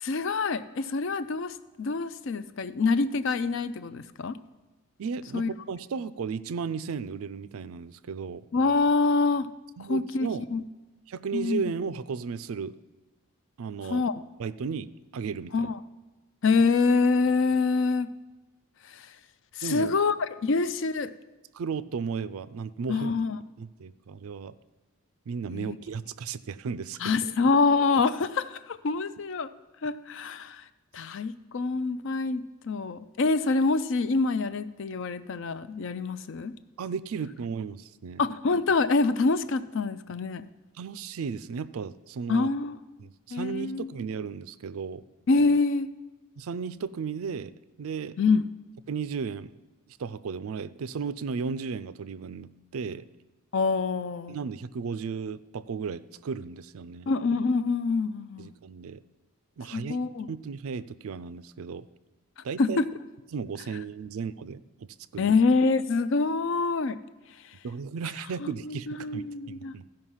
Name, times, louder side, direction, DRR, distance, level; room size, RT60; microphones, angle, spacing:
voice 1, 0.0-4.4 5.3-5.5 8.5-9.5 9.8-10.6 11.3-11.6 13.8-14.1 15.5-15.8 16.4-18.1 18.9-19.0 19.6-21.1 22.9-23.4 25.5-25.8 27.0-29.5 29.8-30.6 30.9-36.5 38.2-40.5 42.3-42.8 43.3-43.9 45.3-45.9 48.2-48.4 53.5-54.4 57.1-58.5 59.7-60.3 62.6-62.9 65.2-67.0 68.4-69.7, left 4 dB, 55° left, 14 dB, 0.4 m, -26 dB
voice 2, 5.0-8.5 9.8-10.4 11.1-12.7 13.6-14.1 14.4-15.7 19.6-19.9 21.5-23.1 23.6-24.5 25.3-27.3 36.8-38.2 40.8-42.5 43.0-45.0 46.4-47.5 47.8-48.2 48.9-49.6 50.0-53.0 54.3-57.1 58.4-59.0 59.6-60.0 60.3-61.9 62.4-62.8 63.3-64.9 65.1-65.3 67.6-69.9, right 5 dB, 70° right, 15 dB, 0.4 m, -35 dB
14.5 x 5.3 x 5.6 m, 1.2 s
head